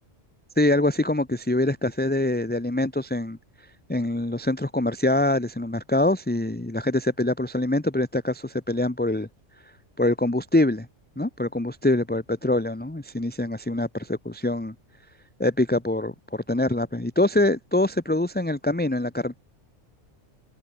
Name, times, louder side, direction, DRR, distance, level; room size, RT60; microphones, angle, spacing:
voice 1, 0.6-3.4 3.9-9.3 10.0-10.9 11.2-14.7 15.4-19.4, left 1 dB, 10° left, 1.1 m, -24 dB
omnidirectional pair, 1.3 m